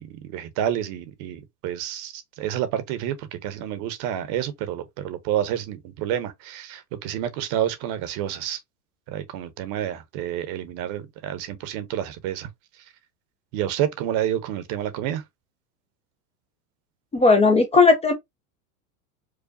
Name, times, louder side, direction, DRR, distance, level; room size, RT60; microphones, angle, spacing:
voice 1, 0.0-8.6 9.1-12.5 13.5-15.2, right 11 dB, 50° right, 1.0 m, -29 dB
voice 2, 17.1-18.1, left 3 dB, 15° left, 0.5 m, -16 dB
4.9 x 2.2 x 2.6 m
hypercardioid pair, 110°, 47 cm